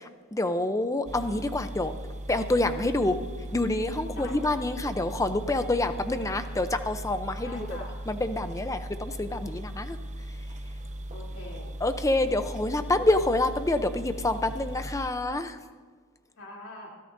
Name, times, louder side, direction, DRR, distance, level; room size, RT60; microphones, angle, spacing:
voice 1, 0.0-1.9 2.3-3.2 3.5-7.8 8.1-10.0 11.8-15.6, left 2 dB, 15° left, 9 dB, 0.6 m, -27 dB
sound 1, 1.1-15.1, right 1 dB, 30° right, 0.7 m, -38 dB
voice 2, 4.1-4.9 7.4-7.9 11.1-11.8 16.4-16.9, left 1 dB, 60° left, -2 dB, 3.2 m, -44 dB
24.5 x 13.0 x 2.7 m, 1.5 s
head